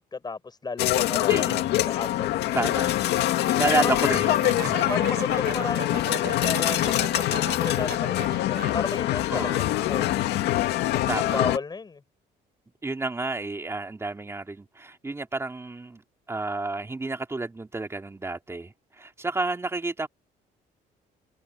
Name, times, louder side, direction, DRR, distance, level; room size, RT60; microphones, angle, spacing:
voice 1, 0.0-1.5 1.8-2.5 3.7-4.0 4.9-10.4 10.9-12.0, left 4 dB, 25° left, 7.9 m, -34 dB
sound 1, 0.8-11.6, left 14 dB, 80° left, 2.2 m, -24 dB
voice 2, 1.3-1.7 2.5-2.9 3.6-4.9 9.3-9.7 11.1-11.4 12.8-16.0 16.3-20.1, right 2 dB, 15° right, 3.0 m, -30 dB
sound 2, 3.8-8.7, right 12 dB, 65° right, 6.4 m, -38 dB
cardioid pair, 110°, 17 cm